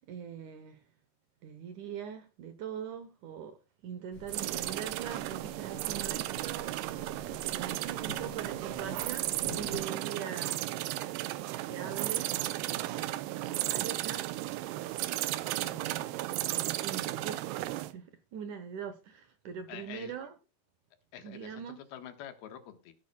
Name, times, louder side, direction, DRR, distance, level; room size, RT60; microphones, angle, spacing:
voice 1, 0.1-0.8 1.4-3.6 3.8-10.6 11.6-12.9 13.3-15.0 15.5-16.2 16.5-20.3 21.2-21.8, right 8 dB, 70° right, 2.0 m, -42 dB
sound 1, 4.1-9.8, left 3 dB, 25° left, 6.4 m, -49 dB
sound 2, 4.3-17.9, right 16 dB, 85° right, 2.7 m, -34 dB
voice 2, 19.7-20.1 21.1-21.6 21.9-22.9, left 10 dB, 75° left, 3.2 m, -46 dB
18.5 x 9.7 x 2.3 m
omnidirectional pair, 4.5 m